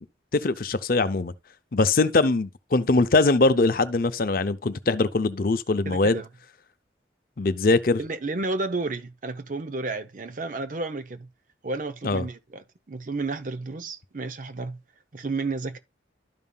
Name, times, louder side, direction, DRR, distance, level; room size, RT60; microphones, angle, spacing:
voice 1, 0.3-1.3 1.7-6.2 7.4-8.0 12.0-12.3, left 3 dB, 50° left, 0.6 m, -22 dB
voice 2, 5.9-6.3 8.0-11.3 11.6-14.8 15.1-15.8, right 3 dB, 45° right, 0.6 m, -32 dB
12.5 x 5.5 x 2.3 m
head